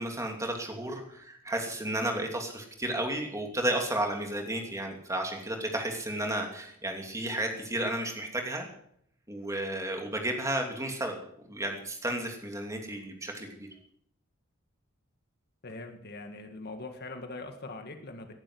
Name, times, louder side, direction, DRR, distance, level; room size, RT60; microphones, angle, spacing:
voice 1, 0.0-8.7 9.3-11.2 11.5-13.7, right 1 dB, 15° right, 3 dB, 2.9 m, -33 dB
voice 2, 15.6-18.4, left 2 dB, 50° left, 6 dB, 2.0 m, -42 dB
18.0 x 11.5 x 6.4 m, 0.70 s
head